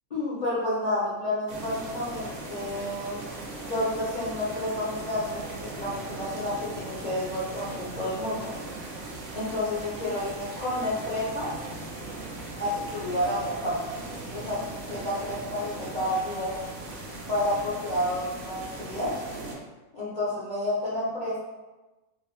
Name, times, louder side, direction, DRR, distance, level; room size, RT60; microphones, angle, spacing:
voice 1, 0.1-3.2 3.6-8.5 9.3-11.5 12.6-13.8 14.3-16.5 17.3-19.1 19.9-21.4, left 1 dB, 50° left, -9 dB, 0.4 m, -30 dB
sound 1, 1.5-19.6, right 2 dB, 65° right, 1.0 m, -38 dB
2.7 x 2.5 x 3.0 m, 1.1 s
omnidirectional pair, 1.6 m